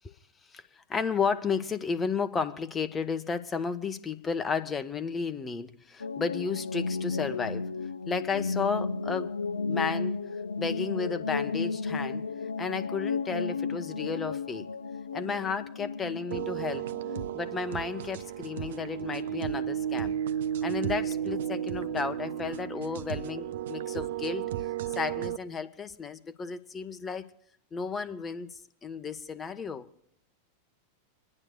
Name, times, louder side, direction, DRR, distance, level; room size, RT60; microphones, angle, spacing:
voice 1, 0.5-7.7 8.1-9.4 9.6-10.2 10.6-12.2 12.6-14.7 15.1-16.9 17.3-20.2 20.6-24.5 25.0-27.3 27.7-29.9, left 5 dB, 20° left, 0.8 m, -33 dB
sound 1, 6.0-17.3, left 4 dB, 75° left, 0.5 m, -33 dB
sound 2, 16.3-25.4, right 10 dB, 60° right, 0.5 m, -33 dB
29.0 x 11.0 x 2.3 m
figure-of-eight pair, 90°, 0 cm